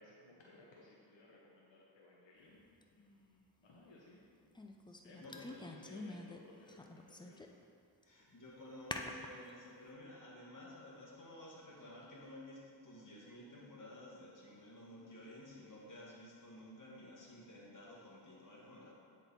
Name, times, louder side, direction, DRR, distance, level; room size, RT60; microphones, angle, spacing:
voice 1, 0.0-2.6 2.9-4.6 5.0-7.5, left 2 dB, 85° left, -4 dB, 1.0 m, -60 dB
sound 1, 2.8-2.9 4.5-6.4 6.7-7.6 8.0-8.1 8.9-9.5, left 2 dB, 10° left, 0.4 m, -46 dB
voice 2, 4.9-5.6 8.0-18.9, left 1 dB, 45° left, -4 dB, 1.8 m, -53 dB
9.0 x 4.1 x 4.1 m, 2.3 s
cardioid pair, 50°, 43 cm